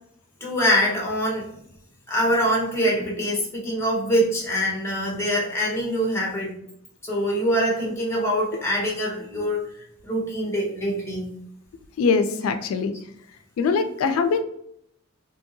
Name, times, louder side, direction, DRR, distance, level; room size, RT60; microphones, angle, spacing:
voice 1, 0.4-1.5 2.1-6.5 7.0-9.6 10.0-11.3, equal, 15° left, -3 dB, 0.9 m, -24 dB
voice 2, 12.0-12.9 13.6-14.4, left 5 dB, 90° left, 10 dB, 0.3 m, -22 dB
2.8 x 2.7 x 2.6 m, 0.73 s
head